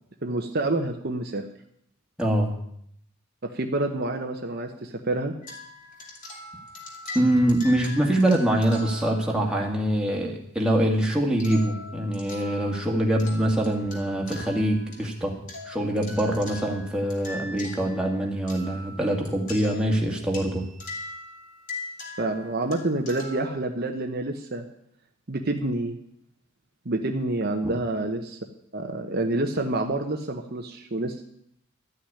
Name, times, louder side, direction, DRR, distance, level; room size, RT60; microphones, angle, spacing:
voice 1, 0.2-1.4 3.4-5.3 22.2-24.6 25.3-26.0 26.8-28.4 28.7-31.2, right 2 dB, 45° right, 3 dB, 1.0 m, -28 dB
voice 2, 2.2-2.5 7.1-15.3 15.7-20.6 27.6-27.7, right 1 dB, 5° right, -1 dB, 2.0 m, -24 dB
sound 1, 5.4-9.7 11.4-15.1 15.5-23.5, left 2 dB, 35° left, 3.1 m, -41 dB
13.5 x 6.4 x 9.9 m, 0.70 s
head